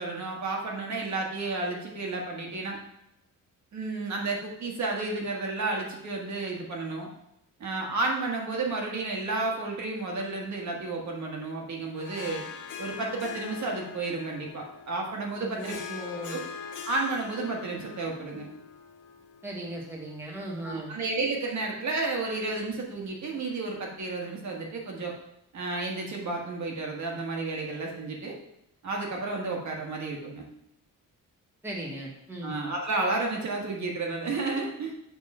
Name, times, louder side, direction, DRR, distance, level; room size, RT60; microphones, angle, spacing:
voice 1, 0.0-2.8 3.7-7.1 7.6-12.4 12.8-15.8 16.3-16.4 16.9-18.5 20.6-25.1 25.5-28.4 28.8-30.5 32.4-34.9, right 3 dB, 55° right, 0 dB, 1.4 m, -32 dB
Harp, 12.0-20.6, left 6 dB, 60° left, 1.0 m, -42 dB
voice 2, 15.4-16.4 19.4-20.9 31.6-32.5, right 1 dB, 5° right, -2 dB, 1.1 m, -37 dB
7.3 x 3.6 x 5.4 m, 0.81 s
wide cardioid pair, 170°, 34 cm